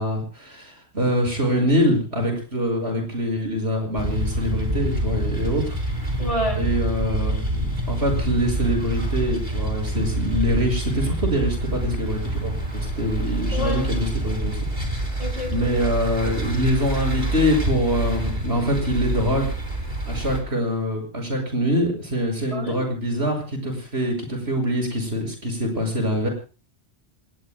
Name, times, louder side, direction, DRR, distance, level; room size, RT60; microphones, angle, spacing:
voice 1, 0.0-5.8 6.5-14.6 15.5-19.5 20.1-26.3, equal, 70° right, 2 dB, 6.5 m, -24 dB
sound 1, 4.0-20.4, right 1 dB, 45° right, 4.4 m, -27 dB
voice 2, 6.2-6.6 13.5-13.9 15.2-15.7 22.5-22.8, equal, 30° left, 1 dB, 6.2 m, -28 dB
27.5 x 20.0 x 2.2 m, 0.36 s
omnidirectional pair, 1.1 m